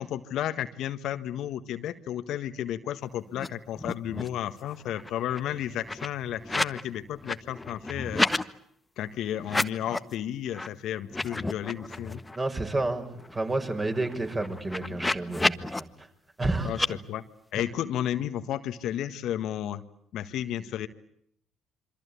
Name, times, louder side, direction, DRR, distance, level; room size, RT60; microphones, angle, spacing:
voice 1, 0.0-8.2 9.0-12.2 16.6-16.8 17.1-17.2 17.5-19.8 20.1-20.9, left 11 dB, 65° left, 10 dB, 1.6 m, -32 dB
sound 1, 3.3-3.5 3.7-4.4 4.7-6.8 7.1-8.4 9.4-10.1 10.5-10.7 11.0-12.4 12.8-12.9 13.1-15.8 16.7-16.9, left 2 dB, 15° left, 1.5 m, -31 dB
voice 2, 12.3-16.1 16.4-16.7, right 2 dB, 25° right, 5 dB, 6.1 m, -30 dB
27.0 x 25.0 x 8.5 m, 0.69 s
hypercardioid pair, 55°, 0 cm